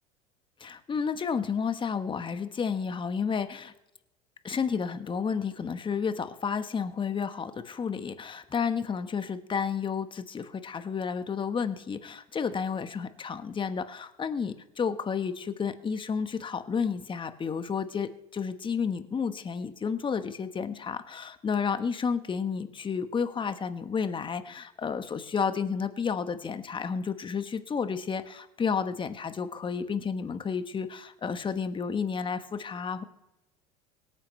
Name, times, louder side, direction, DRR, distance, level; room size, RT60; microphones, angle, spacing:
voice 1, 0.6-3.7 4.4-33.0, left 6 dB, 25° left, 10 dB, 1.3 m, -31 dB
24.5 x 9.1 x 3.3 m, 0.94 s
hypercardioid pair, 70°, 19 cm